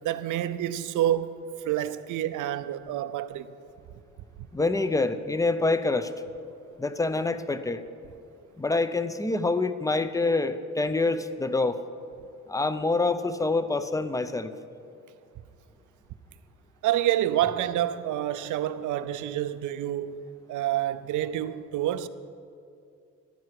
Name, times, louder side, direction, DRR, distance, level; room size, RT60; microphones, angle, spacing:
voice 1, 0.0-3.5 16.8-20.2 20.5-22.1, right 12 dB, 80° right, 0.6 m, -28 dB
voice 2, 4.5-6.1 6.8-7.8 8.6-11.8 12.5-14.5, left 3 dB, 10° left, 0.7 m, -26 dB
14.5 x 12.5 x 4.8 m
cardioid pair, 90°, 30 cm